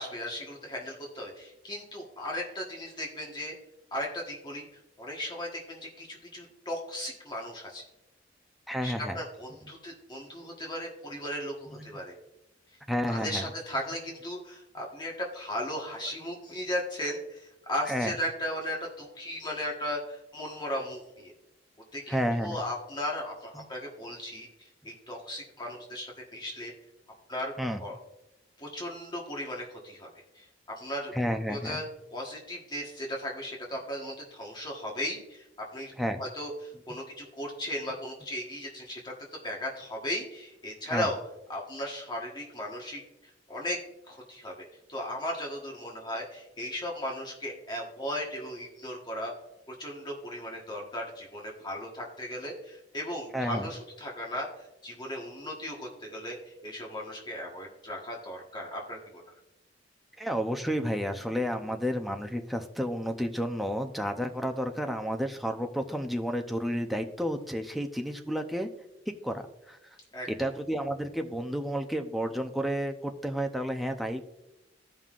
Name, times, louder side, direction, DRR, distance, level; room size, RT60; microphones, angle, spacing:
voice 1, 0.0-3.6 3.9-4.7 5.0-7.8 8.8-12.1 13.1-21.3 21.9-24.5 24.8-26.7 27.3-27.5 27.8-28.0 28.6-30.1 30.3-30.4 30.8-31.1 31.5-35.4 35.7-35.9 36.2-39.1 39.4-41.2 41.5-43.0 43.5-43.8 44.1-44.5 44.9-49.3 49.7-59.2 70.1-70.5, left 1 dB, 25° left, -1 dB, 1.3 m, -36 dB
voice 2, 8.7-9.2 11.7-12.0 12.9-13.5 17.9-18.1 22.1-22.6 23.5-23.7 27.6-27.8 31.1-31.8 36.0-36.2 40.9-41.1 53.3-53.7 60.2-68.7 69.2-70.0 70.4-74.3, equal, ahead, 4 dB, 0.6 m, -31 dB
15.0 x 5.5 x 2.5 m, 0.91 s
head